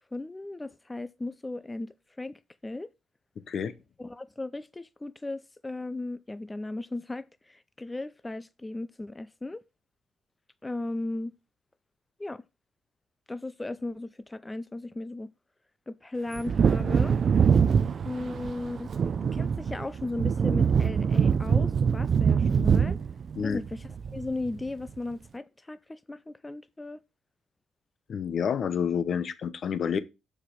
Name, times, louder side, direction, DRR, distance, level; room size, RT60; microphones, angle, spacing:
voice 1, 0.1-2.9 4.0-9.6 10.6-11.3 12.2-12.4 13.3-15.3 15.9-17.2 18.0-18.9 19.2-23.0 23.4-27.0, left 2 dB, 15° left, 0.4 m, -36 dB
Wind / Thunder, 16.3-24.6 24.9-25.0, right 6 dB, 50° right, 0.4 m, -24 dB
voice 2, 28.1-30.0, left 7 dB, 55° left, 0.8 m, -29 dB
7.0 x 4.6 x 5.8 m
cardioid pair, 90°, 0 cm